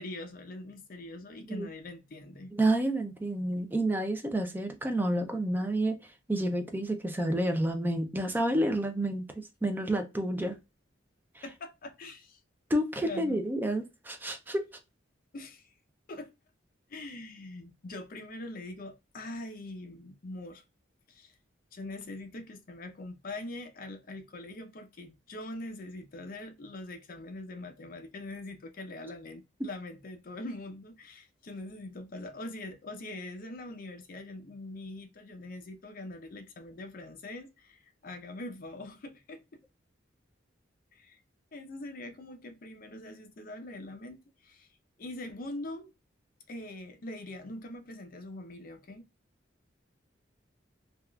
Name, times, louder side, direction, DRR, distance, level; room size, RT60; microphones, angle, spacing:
voice 1, 0.0-2.5 11.4-12.4 13.0-13.4 15.3-15.7 16.1-16.3 16.9-20.6 21.1-21.4 21.7-39.6 40.9-41.2 41.5-44.7 45.0-45.9 46.5-49.1, left 2 dB, 50° left, 0.5 m, -43 dB
voice 2, 2.5-5.9 6.3-9.3 9.6-10.6 11.4-11.5 12.7-14.7, right 1 dB, 10° right, 0.4 m, -29 dB
3.4 x 2.3 x 2.2 m
head